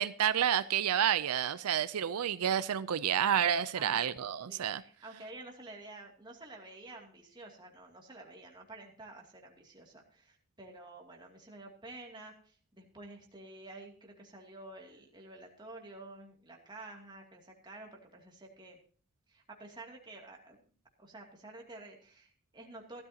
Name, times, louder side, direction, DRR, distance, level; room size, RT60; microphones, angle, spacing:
voice 1, 0.0-4.8, right 9 dB, 85° right, 0.5 m, -29 dB
voice 2, 3.7-18.8 19.3-20.6 21.0-23.0, right 2 dB, 20° right, 2.5 m, -50 dB
16.5 x 12.5 x 2.8 m
head